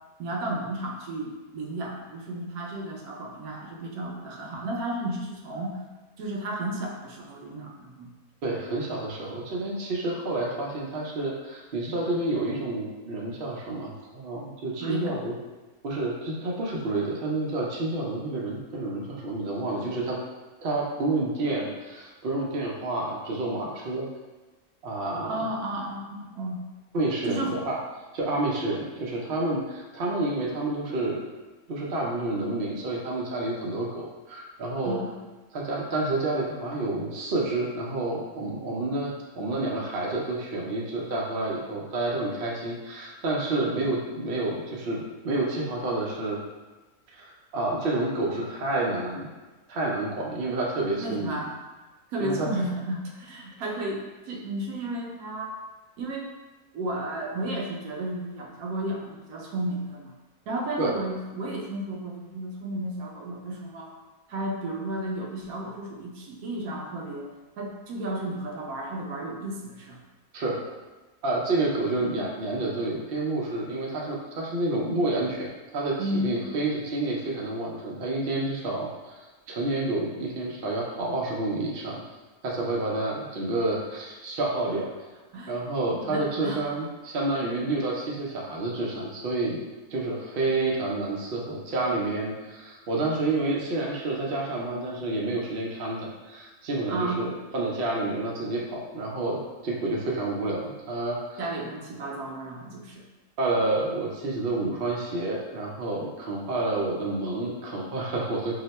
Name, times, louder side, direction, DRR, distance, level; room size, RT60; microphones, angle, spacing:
voice 1, 0.2-5.8 6.2-8.1 14.8-15.2 25.2-26.6 27.3-27.6 34.8-35.2 51.0-51.5 52.1-55.6 56.0-56.3 56.7-60.1 60.5-63.9 64.3-67.3 67.6-70.0 76.0-76.3 85.3-85.6 85.9-86.6 96.9-97.2 101.4-103.0, right 1 dB, 85° right, -1 dB, 1.1 m, -33 dB
voice 2, 8.4-15.3 15.8-20.2 20.6-24.1 24.8-25.4 26.9-27.8 28.1-31.2 31.7-35.0 35.5-46.4 47.1-47.2 47.5-49.3 49.7-51.4 52.2-52.6 60.8-60.9 70.3-70.6 71.2-75.5 75.7-79.2 79.5-82.0 82.4-84.9 85.5-89.6 89.9-101.4 103.4-108.6, right 2 dB, 55° right, -3 dB, 0.7 m, -29 dB
2.8 x 2.1 x 4.0 m, 1.2 s
omnidirectional pair, 1.5 m